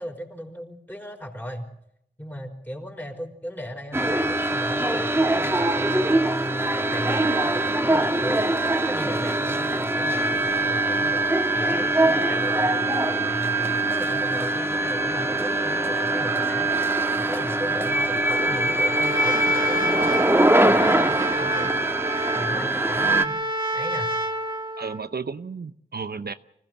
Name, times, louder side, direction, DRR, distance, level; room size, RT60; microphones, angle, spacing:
voice 1, 0.0-1.7 2.2-8.5 8.9-11.2 11.5-21.8 22.3-23.4 23.7-24.2, equal, 10° left, 3 dB, 4.7 m, -36 dB
sound 1, 3.9-23.2, right 2 dB, 15° right, 1.6 m, -23 dB
Trumpet, 18.3-25.1, right 1 dB, 30° right, 2.8 m, -29 dB
voice 2, 24.8-26.3, right 5 dB, 65° right, 11 dB, 0.8 m, -33 dB
25.5 x 16.0 x 7.6 m, 0.75 s
wide cardioid pair, 70°, 18 cm